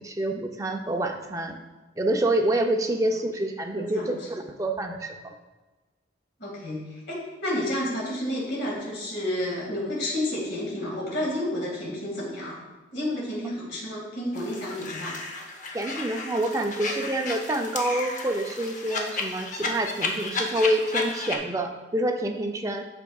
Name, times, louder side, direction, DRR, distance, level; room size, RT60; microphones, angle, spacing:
voice 1, 0.0-1.6 2.0-5.3 15.7-22.8, right 1 dB, 15° right, 3 dB, 0.4 m, -27 dB
voice 2, 3.7-4.2 6.4-12.6 12.9-15.2, left 1 dB, 60° left, -4 dB, 1.9 m, -30 dB
sound 1, 14.3-21.4, left 3 dB, 40° left, 0.7 m, -33 dB
8.6 x 6.0 x 2.3 m, 1.2 s
head